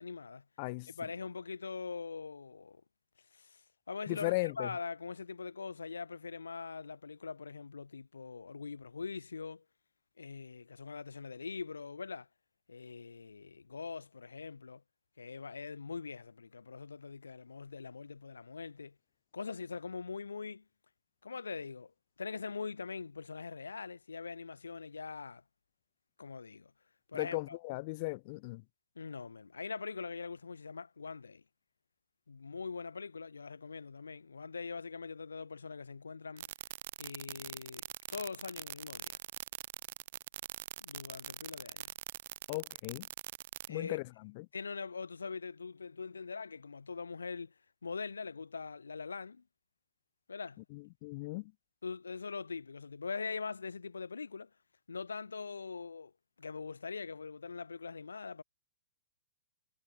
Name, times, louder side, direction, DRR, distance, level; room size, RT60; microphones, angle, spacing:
voice 1, 0.0-0.4 0.9-2.8 3.3-9.6 10.2-12.3 12.7-14.8 15.2-18.9 19.3-20.6 21.2-21.9 22.2-25.4 26.2-26.7 27.1-27.6 29.0-31.4 32.3-36.5 37.0-37.8 38.1-39.2 40.8-41.9 43.7-44.0 44.5-47.5 47.8-49.4 50.3-50.6 51.8-54.5 54.9-56.1 56.4-58.4, left 5 dB, 85° left, 1.0 m, -42 dB
voice 2, 0.6-0.9 4.1-4.7 27.1-28.6 42.5-43.1 43.7-44.5 50.7-51.5, left 25 dB, 45° left, 0.4 m, -37 dB
sound 1, 36.4-43.7, right 15 dB, 55° right, 0.4 m, -42 dB
hypercardioid pair, 115°, 0 cm